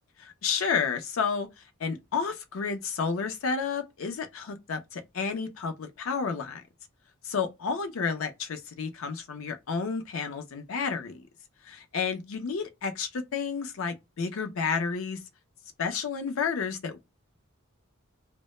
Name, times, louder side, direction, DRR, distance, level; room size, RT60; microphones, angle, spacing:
voice 1, 0.2-1.5 1.8-6.6 7.2-11.2 11.7-15.2 15.8-17.0, left 5 dB, 75° left, 0.5 m, -31 dB
2.1 x 2.0 x 3.0 m
head